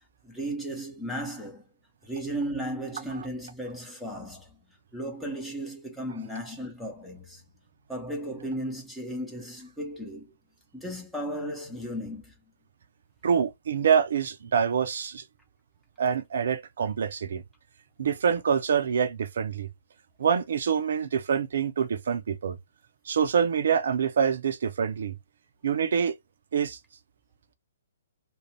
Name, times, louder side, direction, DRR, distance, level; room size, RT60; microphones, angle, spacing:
voice 1, 0.2-1.6 2.0-4.5 4.9-7.4 7.9-10.3 10.7-12.3, right 1 dB, 5° left, 0.8 m, -35 dB
voice 2, 13.2-15.2 16.0-17.4 18.0-19.7 20.2-22.6 23.1-25.1 25.6-26.1 26.5-26.8, right 7 dB, 60° right, 0.5 m, -26 dB
2.5 x 2.1 x 3.2 m
figure-of-eight pair, 125°, 0 cm